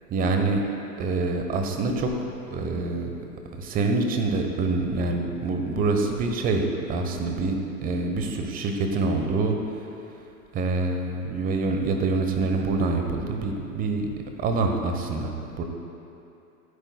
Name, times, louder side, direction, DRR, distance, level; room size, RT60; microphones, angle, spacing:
voice 1, 0.1-0.6 1.0-2.1 2.5-3.1 3.6-9.6 10.5-15.6, right 3 dB, 20° right, 4 dB, 1.0 m, -26 dB
28.0 x 9.5 x 2.3 m, 2.8 s
figure-of-eight pair, 110°, 47 cm